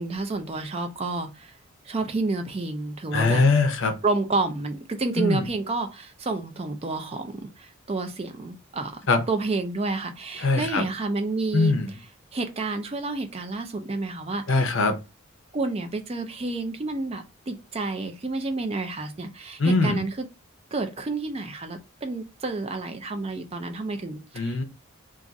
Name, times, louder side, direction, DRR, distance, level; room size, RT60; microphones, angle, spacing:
voice 1, 0.0-1.5 1.9-3.4 4.0-8.9 9.3-11.7 12.3-14.4 15.5-20.3 20.7-24.6, right 3 dB, 25° right, 0.4 m, -30 dB
voice 2, 3.1-4.0 5.2-5.5 9.1-9.2 10.4-10.9 11.5-11.9 14.5-15.0 19.6-20.1 24.3-24.6, left 3 dB, 60° left, 0.6 m, -22 dB
2.5 x 2.4 x 3.9 m
head